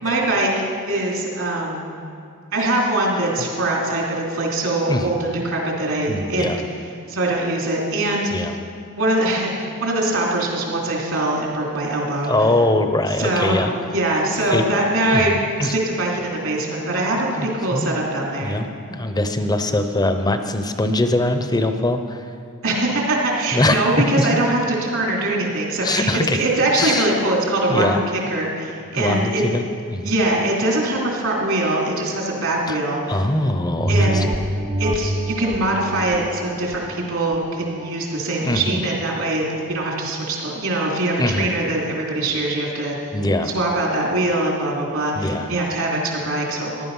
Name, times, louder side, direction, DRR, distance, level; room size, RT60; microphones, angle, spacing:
voice 1, 0.0-1.9 2.5-6.5 7.1-8.4 9.0-12.3 13.2-13.6 13.9-15.3 15.6-18.6 22.6-29.4 30.0-33.2 33.9-34.3 34.8-43.1 43.5-46.9, right 1 dB, 70° right, -2 dB, 3.2 m, -22 dB
voice 2, 6.1-6.6 8.3-8.6 12.3-13.7 14.5-14.8 15.1-15.7 17.3-18.0 18.4-22.2 23.5-23.8 24.2-24.3 25.8-26.4 26.7-27.1 27.7-28.0 28.9-29.7 29.9-30.1 32.7-32.8 33.1-34.2 38.4-38.8 41.2-41.5 43.1-43.5 45.2-45.5, left 1 dB, 20° left, 7 dB, 0.8 m, -22 dB
sound 1, 33.8-38.7 39.2-39.3, right 1 dB, 25° right, 0.6 m, -26 dB
15.5 x 11.5 x 5.6 m, 2.5 s
head